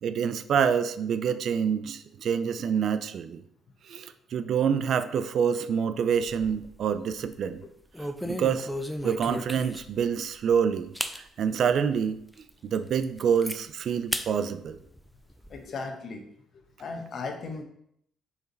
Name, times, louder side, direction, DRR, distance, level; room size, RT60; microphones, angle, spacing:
voice 1, 0.0-3.4 3.9-7.6 8.0-8.7 9.0-12.2 12.6-14.8, right 7 dB, 60° right, 12 dB, 0.4 m, -27 dB
sound 1, 6.1-6.8 7.2-7.4 7.9-10.0 10.5-10.6 10.9-11.2 11.7-11.8 12.3-12.4 12.7-13.6 14.1-14.3 14.7-15.6, equal, 5° left, 0.7 m, -35 dB
voice 2, 15.5-16.3 16.8-17.6, left 4 dB, 55° left, 4 dB, 1.1 m, -36 dB
5.0 x 4.8 x 3.9 m, 0.71 s
hypercardioid pair, 50°, 0 cm